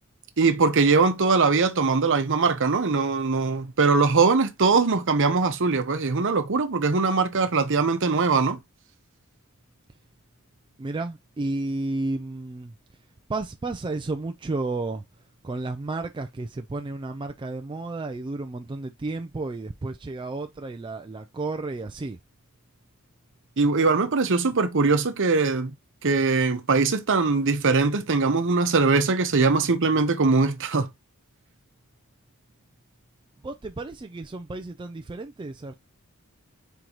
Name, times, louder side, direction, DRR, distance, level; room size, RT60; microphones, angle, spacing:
voice 1, 0.4-8.6 23.6-25.7 26.0-30.9, right 4 dB, 60° right, 0.8 m, -21 dB
voice 2, 10.8-12.7 13.3-15.0 15.4-22.2 33.4-35.7, right 2 dB, 20° right, 0.3 m, -32 dB
4.5 x 3.9 x 2.9 m
head